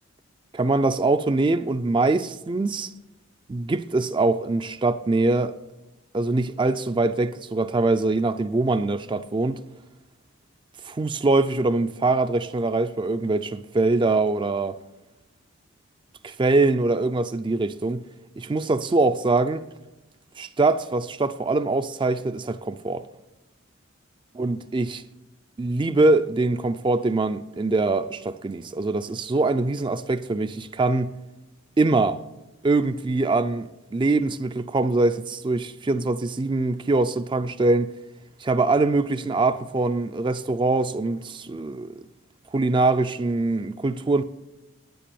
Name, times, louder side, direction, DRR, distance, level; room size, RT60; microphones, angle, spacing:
voice 1, 0.5-2.9 3.5-5.6 6.1-9.6 10.8-14.8 16.2-18.0 18.4-19.6 20.4-23.0 24.4-25.0 25.6-31.1 31.8-32.2 32.6-37.9 38.4-41.9 42.5-44.2, right 3 dB, 20° right, 0.3 m, -23 dB
10.0 x 9.3 x 6.9 m
head